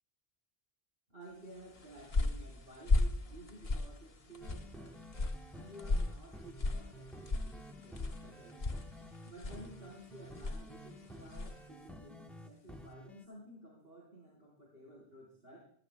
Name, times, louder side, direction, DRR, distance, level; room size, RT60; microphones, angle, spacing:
voice 1, 1.1-5.0 5.5-8.6 9.3-15.6, right 1 dB, 65° right, -4 dB, 4.4 m, -54 dB
sound 1, 1.6-11.7, left 2 dB, 35° left, 0.9 m, -37 dB
sound 2, 4.4-13.3, equal, ahead, 1.0 m, -52 dB
21.5 x 13.0 x 2.2 m, 0.62 s
omnidirectional pair, 1.1 m